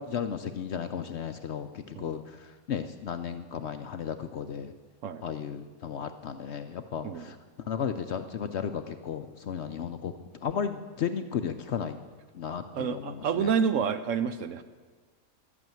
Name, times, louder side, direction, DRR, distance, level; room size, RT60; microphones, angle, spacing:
voice 1, 0.0-4.7 5.2-10.1 10.4-12.0 12.3-13.5, left 7 dB, 60° left, 9 dB, 0.7 m, -34 dB
voice 2, 7.0-7.3 12.7-14.6, right 7 dB, 65° right, 11 dB, 0.9 m, -28 dB
11.5 x 8.5 x 9.1 m, 1.4 s
omnidirectional pair, 1.6 m